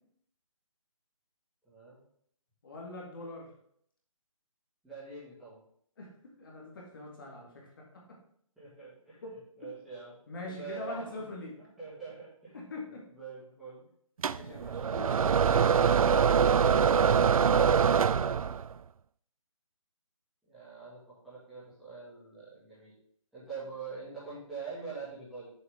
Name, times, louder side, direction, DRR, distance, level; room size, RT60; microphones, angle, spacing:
voice 1, 1.6-2.0 4.8-5.6 8.6-9.2 9.6-10.2 10.5-11.2 11.6-12.6 13.1-13.9 20.4-22.9 23.3-25.5, right 4 dB, ahead, -12 dB, 2.2 m, -44 dB
voice 2, 2.6-3.5 6.0-6.1 6.4-8.2 9.2-9.3 10.3-11.5 12.5-13.0 14.2-15.4, left 2 dB, 40° left, -2 dB, 2.2 m, -43 dB
sound 1, 14.2-18.7, right 7 dB, 80° right, 0.4 m, -24 dB
7.6 x 7.1 x 3.8 m, 0.66 s
hypercardioid pair, 170°, 18 cm